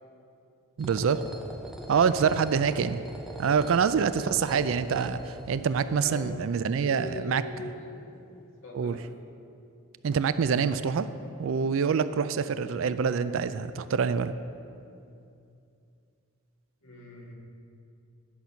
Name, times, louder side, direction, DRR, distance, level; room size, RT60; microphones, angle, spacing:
sound 1, 0.8-6.0, equal, ahead, 0.6 m, -41 dB
voice 1, 0.8-1.2 1.9-3.0 3.4-7.4 8.7-9.0 10.0-11.1 11.4-14.3, right 6 dB, 60° right, 13 dB, 0.3 m, -26 dB
voice 2, 1.9-2.2 3.5-3.8 6.0-6.3 6.7-8.3 8.6-9.0 16.8-17.3, left 2 dB, 65° left, -2 dB, 1.7 m, -42 dB
10.5 x 6.0 x 5.7 m, 2.6 s
head